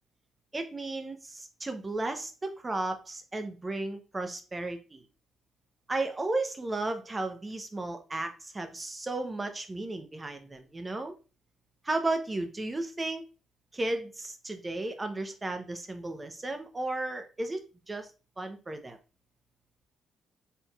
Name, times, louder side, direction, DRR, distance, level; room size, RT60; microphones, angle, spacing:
voice 1, 0.5-5.0 5.9-11.1 11.8-13.2 13.7-17.6 17.9-18.1 18.4-19.0, right 2 dB, 20° right, 6 dB, 0.8 m, -34 dB
4.4 x 3.5 x 2.4 m, 0.32 s
cardioid pair, 90°, 0 cm